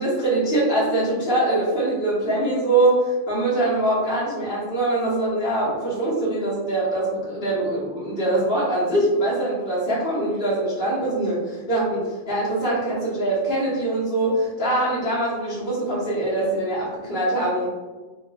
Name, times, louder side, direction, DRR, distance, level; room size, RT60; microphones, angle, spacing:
voice 1, 0.0-17.7, right 1 dB, 55° left, -7 dB, 1.5 m, -23 dB
5.1 x 2.3 x 2.3 m, 1.3 s
omnidirectional pair, 1.3 m